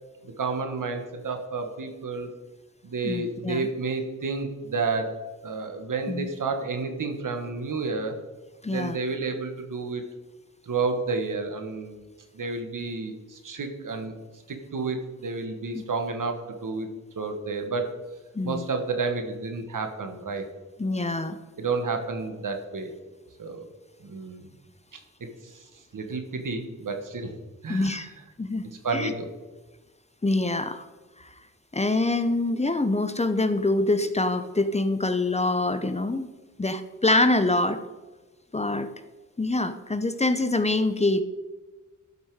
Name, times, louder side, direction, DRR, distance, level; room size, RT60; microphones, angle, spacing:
voice 1, 0.2-2.3 2.8-8.2 8.7-10.0 10.7-12.0 12.3-14.1 14.5-16.9 17.1-18.0 18.4-20.5 21.6-22.9 23.4-23.7 24.0-24.5 24.9-25.0 25.4-25.6 25.9-27.3 27.6-28.1 28.8-29.3, right 4 dB, 75° right, 5 dB, 1.3 m, -30 dB
voice 2, 3.0-3.7 6.1-6.3 8.6-9.0 15.7-15.8 18.3-18.7 20.8-21.4 27.7-28.1 28.4-28.7 28.9-29.1 30.2-30.9 31.2-31.3 31.7-36.3 36.6-37.8 38.5-38.9 39.4-41.2, left 2 dB, 20° left, 10 dB, 0.6 m, -25 dB
12.0 x 5.5 x 4.7 m, 1.2 s
wide cardioid pair, 75°, 32 cm